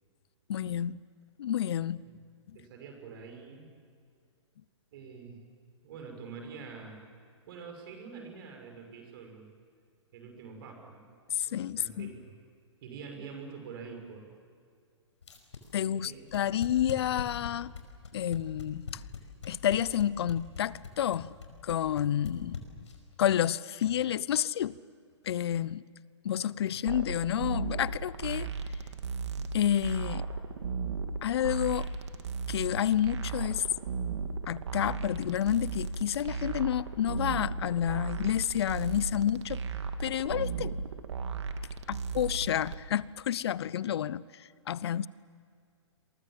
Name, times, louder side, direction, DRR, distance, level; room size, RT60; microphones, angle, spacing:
voice 1, 0.5-1.0 1.4-2.0 11.3-12.1 15.7-17.7 18.1-19.0 19.5-21.3 21.6-22.6 23.2-24.8 25.2-25.8 26.2-28.5 29.5-30.3 31.2-31.9 32.5-33.6 34.5-39.6 40.0-40.7 41.9-45.1, left 10 dB, 55° left, 0.8 m, -30 dB
voice 2, 2.5-3.7 4.9-5.4 5.8-7.0 7.5-9.5 10.1-11.0 11.4-12.4 12.8-14.3 15.7-16.3, right 5 dB, 50° right, 6.4 m, -46 dB
sound 1, 15.2-23.1, left 6 dB, 75° left, 5.2 m, -40 dB
sound 2, 26.9-42.8, right 5 dB, 65° right, 2.4 m, -36 dB
29.0 x 23.5 x 7.7 m
hypercardioid pair, 130°, 16 cm